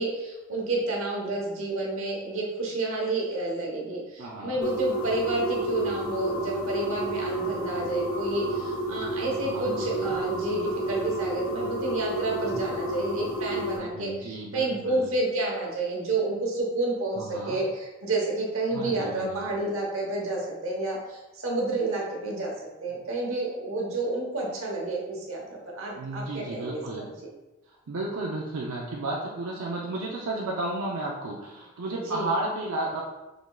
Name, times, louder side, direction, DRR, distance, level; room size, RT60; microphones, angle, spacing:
voice 1, 0.0-22.5 22.8-27.1 32.1-32.3, right 2 dB, 70° right, -2 dB, 1.0 m, -30 dB
voice 2, 4.2-4.6 9.4-10.2 13.8-15.1 17.1-17.6 18.7-19.5 26.0-27.1 27.9-33.0, right 2 dB, 85° right, -3 dB, 0.5 m, -33 dB
sound 1, 4.6-13.8, right 1 dB, 85° left, 1.2 m, -30 dB
5.0 x 3.6 x 2.3 m, 1.1 s
head